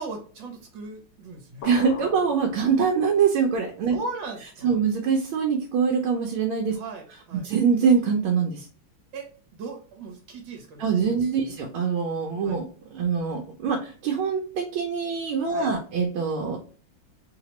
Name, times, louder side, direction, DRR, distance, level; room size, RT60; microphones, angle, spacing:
voice 1, 0.0-1.7 3.9-4.8 6.7-7.5 9.1-11.5 12.4-12.6 15.5-15.7, right 3 dB, 70° right, 2 dB, 1.6 m, -38 dB
sound 1, 1.6-3.3, left 5 dB, 75° left, 1.5 m, -40 dB
voice 2, 1.6-4.0 4.6-6.8 7.4-8.6 10.8-16.6, right 6 dB, 85° right, 1 dB, 1.6 m, -24 dB
3.8 x 2.9 x 3.0 m, 0.41 s
omnidirectional pair, 2.2 m